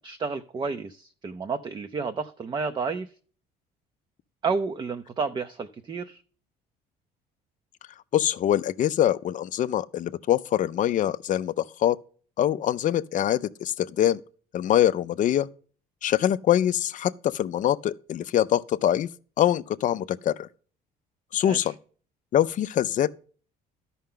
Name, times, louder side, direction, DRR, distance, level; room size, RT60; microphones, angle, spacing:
voice 1, 0.0-3.1 4.4-6.2 21.4-21.7, right 4 dB, 25° right, 0.5 m, -31 dB
voice 2, 8.1-12.0 12.4-14.2 14.5-15.5 16.0-19.1 19.4-20.5 21.3-21.8 22.3-23.1, left 11 dB, 50° left, 0.5 m, -24 dB
12.5 x 5.7 x 3.7 m
cardioid pair, 110°, 17 cm